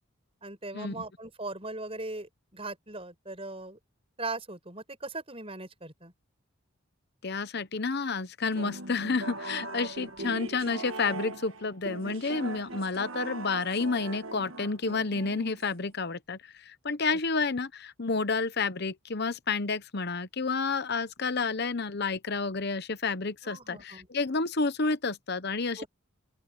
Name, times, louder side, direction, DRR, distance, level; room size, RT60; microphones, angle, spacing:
voice 1, 0.4-3.8 4.2-6.1 23.4-24.1 25.8-25.9, right 2 dB, 25° right, 6.8 m, -39 dB
voice 2, 7.2-25.8, left 4 dB, 50° left, 0.9 m, -30 dB
sound 1, 8.5-15.9, right 2 dB, 70° right, 1.6 m, -40 dB
open air
head